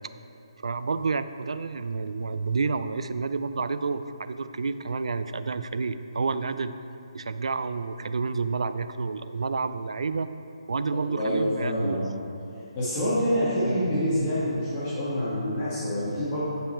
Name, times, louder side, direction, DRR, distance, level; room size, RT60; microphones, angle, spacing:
voice 1, 0.6-6.8 7.1-10.3 10.7-12.0, right 4 dB, 75° right, 11 dB, 0.4 m, -29 dB
voice 2, 11.0-12.1 12.8-16.4, equal, 25° left, -10 dB, 1.6 m, -26 dB
9.1 x 5.1 x 4.4 m, 2.7 s
hypercardioid pair, 155°, 3 cm